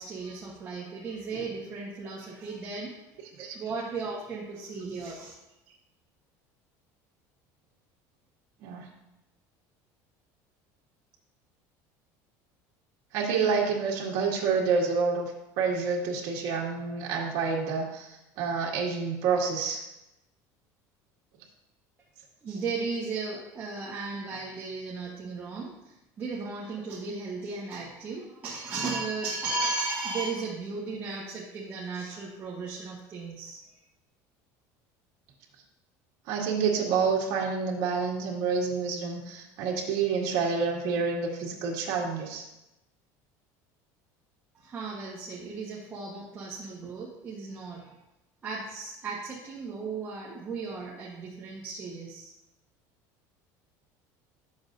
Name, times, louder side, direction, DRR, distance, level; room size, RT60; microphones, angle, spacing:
voice 1, 0.0-2.9 3.5-5.3 22.4-33.8 44.5-47.9 48.4-52.3, right 3 dB, 25° right, -6 dB, 1.2 m, -35 dB
voice 2, 13.1-15.3 15.6-19.8 36.3-42.4, right 5 dB, 60° right, -2 dB, 2.1 m, -28 dB
11.0 x 7.1 x 2.6 m, 0.93 s
cardioid pair, 165°, 8 cm